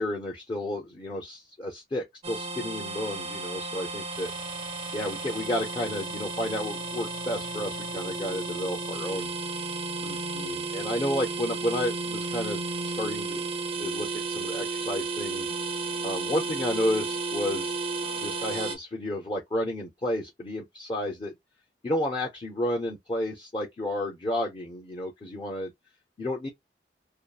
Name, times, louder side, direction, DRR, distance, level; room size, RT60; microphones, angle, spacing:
voice 1, 0.0-4.3 4.9-9.3 10.0-13.5 13.8-15.5 16.0-17.8 18.1-21.3 21.8-25.7 26.2-26.5, left 1 dB, 30° left, 0.5 m, -31 dB
sound 1, 2.2-18.8, right 3 dB, 35° right, 0.4 m, -33 dB
2.6 x 2.3 x 2.3 m
head